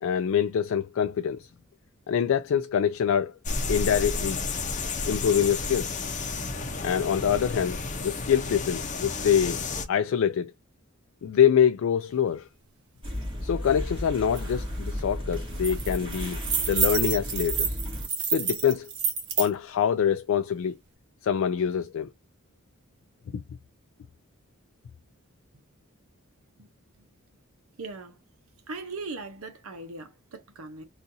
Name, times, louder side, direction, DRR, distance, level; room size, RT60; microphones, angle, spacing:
voice 1, 0.0-1.5 2.1-3.3 3.7-4.4 5.1-6.0 6.8-7.8 8.0-10.5 11.2-12.5 13.4-16.4 16.7-17.8 18.3-18.9 19.4-20.8 21.2-22.1 23.3-23.4, left 8 dB, 70° left, 0.3 m, -25 dB
sound 1, 3.4-9.8, left 3 dB, 35° left, 0.6 m, -31 dB
sound 2, 13.0-18.1, left 1 dB, 25° right, 1.9 m, -34 dB
sound 3, 14.4-14.5 14.8-15.0 15.3-19.5, right 6 dB, 55° right, 0.9 m, -29 dB
voice 2, 27.8-28.2 28.7-30.9, right 3 dB, 85° right, 0.7 m, -39 dB
3.9 x 2.4 x 2.7 m
head